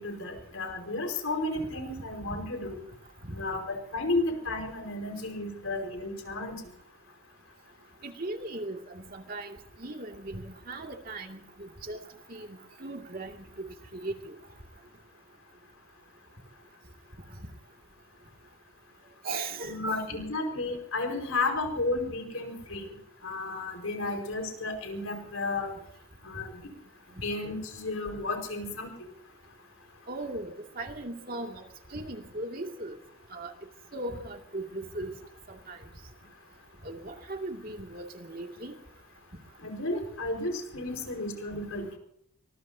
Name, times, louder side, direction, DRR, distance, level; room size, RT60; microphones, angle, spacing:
voice 1, 0.0-2.8 3.3-6.6 19.6-23.0 23.2-25.7 26.2-26.7 27.1-29.1 39.6-42.0, left 2 dB, 85° left, 3 dB, 5.0 m, -33 dB
voice 2, 8.0-12.0 12.3-14.3 19.2-20.3 30.1-31.7 31.9-33.0 33.3-33.5 33.9-35.2 35.5-35.8 36.8-38.8, right 2 dB, 45° right, 3 dB, 2.4 m, -38 dB
24.0 x 21.5 x 2.8 m, 0.67 s
head